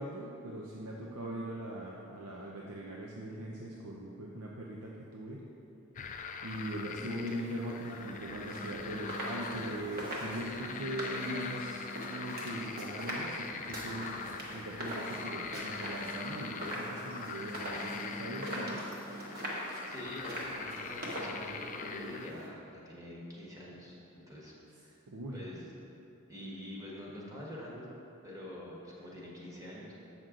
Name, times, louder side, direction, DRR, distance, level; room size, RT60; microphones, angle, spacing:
voice 1, 0.0-5.4 6.4-14.1 14.5-18.9 25.1-25.4, right 1 dB, 80° right, -3 dB, 0.7 m, -40 dB
sound 1, 6.0-22.3, left 5 dB, 35° left, 0.3 m, -43 dB
sound 2, 6.5-22.5, equal, 45° right, 1.2 m, -42 dB
voice 2, 18.6-19.3 19.9-25.0 25.3-25.7 26.3-27.9 28.2-29.9, left 1 dB, 15° right, -5 dB, 1.2 m, -46 dB
7.7 x 6.0 x 3.8 m, 2.8 s
head